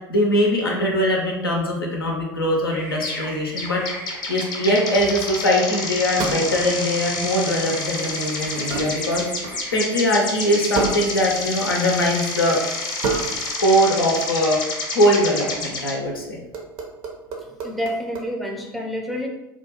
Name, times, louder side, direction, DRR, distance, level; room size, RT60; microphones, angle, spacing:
voice 1, 0.1-3.8 4.3-9.3 9.7-12.6 13.6-14.6 14.9-16.4, equal, 85° left, -1 dB, 0.5 m, -21 dB
sound 1, 2.7-15.6, right 1 dB, 85° right, 0.9 m, -39 dB
sound 2, 3.0-3.3 3.6-15.9, left 3 dB, 35° left, 0.7 m, -29 dB
sound 3, 3.8-4.2 6.2-7.0 7.5-7.9 8.7-9.8 10.7-11.6 11.9-12.1 13.0-13.6 13.9-14.2 15.9-16.1 16.5-18.3, right 3 dB, 50° right, 0.5 m, -30 dB
voice 2, 17.6-19.3, equal, ahead, 0 dB, 0.5 m, -28 dB
2.3 x 2.2 x 2.9 m, 0.95 s
figure-of-eight pair, 70°, 12 cm